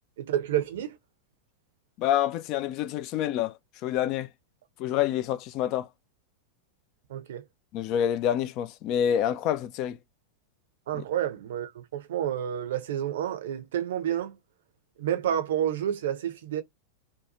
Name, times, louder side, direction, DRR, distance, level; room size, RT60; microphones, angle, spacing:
voice 1, 0.2-1.0 7.1-7.4 10.9-14.4 15.0-16.6, right 10 dB, 60° right, 0.6 m, -29 dB
voice 2, 2.0-4.3 4.8-5.9 7.7-10.0 10.9-11.0, left 10 dB, 40° left, 0.3 m, -27 dB
2.7 x 2.3 x 2.7 m
figure-of-eight pair, 90°, 0 cm